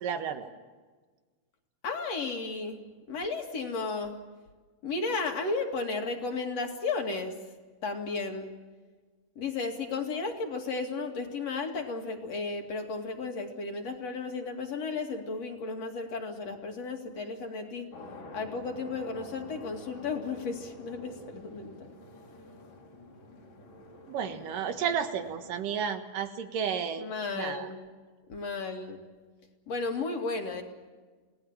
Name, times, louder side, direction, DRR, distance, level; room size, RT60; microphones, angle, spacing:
voice 1, 0.0-0.5 24.1-27.1 27.3-27.7, right 7 dB, 80° right, 8 dB, 3.1 m, -32 dB
voice 2, 1.8-4.2 4.8-7.4 7.8-8.5 9.4-17.9 18.3-21.9 27.0-27.9 28.3-29.0 29.7-30.6, left 4 dB, 50° left, 4 dB, 3.3 m, -34 dB
sound 1, 17.9-25.7, left 2 dB, 80° left, 4.9 m, -49 dB
29.0 x 18.5 x 7.3 m, 1.4 s
omnidirectional pair, 3.9 m